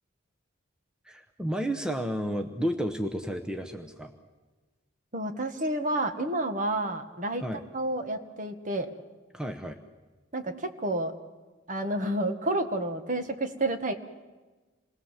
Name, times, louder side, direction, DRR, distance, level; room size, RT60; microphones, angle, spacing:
voice 1, 1.0-4.1 7.4-7.6 9.3-9.8, equal, 5° right, 4 dB, 0.9 m, -32 dB
voice 2, 5.1-7.4 7.7-8.9 10.3-11.1 11.7-13.9, right 1 dB, 40° right, 7 dB, 1.5 m, -30 dB
28.0 x 20.5 x 7.4 m, 1.3 s
head